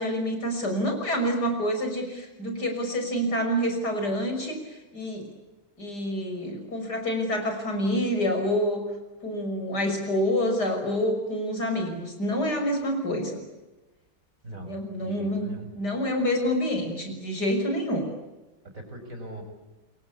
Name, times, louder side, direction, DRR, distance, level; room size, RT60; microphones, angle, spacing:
voice 1, 0.0-4.6 4.9-5.2 5.8-8.8 9.2-13.4 14.6-15.5 15.7-18.1, equal, 55° left, 4 dB, 6.7 m, -27 dB
voice 2, 14.4-15.7 18.6-19.4, right 1 dB, 40° right, 5 dB, 6.8 m, -41 dB
27.5 x 23.0 x 8.6 m, 1.1 s
omnidirectional pair, 2.1 m